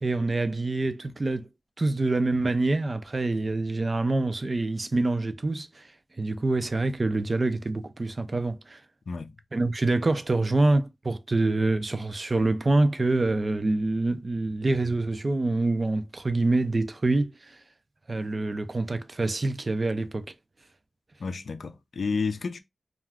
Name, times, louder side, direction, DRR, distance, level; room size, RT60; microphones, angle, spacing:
voice 1, 0.0-1.5 1.8-5.9 6.2-8.8 9.5-17.6 18.1-20.3, right 2 dB, 45° right, 0.4 m, -26 dB
voice 2, 21.2-22.6, left 4 dB, 70° left, 0.4 m, -31 dB
2.4 x 2.3 x 3.4 m
cardioid pair, 50°, 0 cm